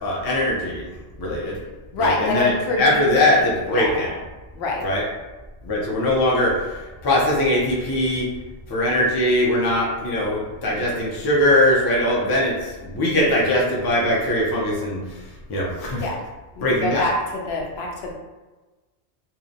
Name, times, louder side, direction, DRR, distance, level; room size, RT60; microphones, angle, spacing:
voice 1, 0.0-0.9 1.2-1.6 2.0-4.2 4.8-5.0 5.6-6.8 7.0-8.3 8.7-15.0 15.5-16.1 16.6-17.0, left 1 dB, 40° left, -4 dB, 0.3 m, -21 dB
voice 2, 1.9-4.0 4.5-4.9 16.0-16.2 16.6-18.1, left 2 dB, 70° left, -1 dB, 0.8 m, -26 dB
2.6 x 2.1 x 2.6 m, 1.2 s
omnidirectional pair, 1.1 m